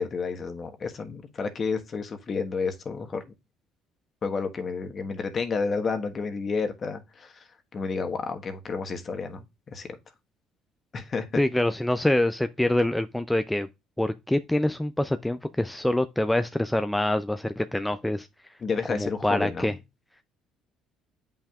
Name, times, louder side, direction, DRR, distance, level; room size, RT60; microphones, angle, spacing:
voice 1, 0.0-3.2 4.2-9.9 10.9-11.4 18.6-19.8, left 4 dB, 40° left, 1.3 m, -31 dB
voice 2, 11.4-13.7 14.0-18.3 18.9-19.7, left 1 dB, 5° left, 0.4 m, -25 dB
8.5 x 5.6 x 2.4 m
hypercardioid pair, 65°, 0 cm